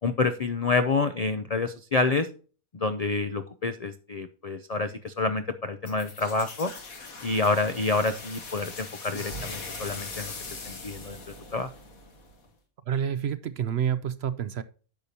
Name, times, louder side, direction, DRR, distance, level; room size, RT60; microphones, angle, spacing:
voice 1, 0.0-2.3 2.7-6.7 7.2-11.2 11.5-11.7, left 3 dB, 60° left, 10 dB, 0.4 m, -28 dB
sound 1, 5.9-12.5, left 3 dB, 85° left, 2.2 m, -40 dB
voice 2, 12.9-14.6, right 8 dB, 65° right, 14 dB, 0.7 m, -28 dB
10.5 x 6.8 x 2.7 m, 0.39 s
omnidirectional pair, 1.5 m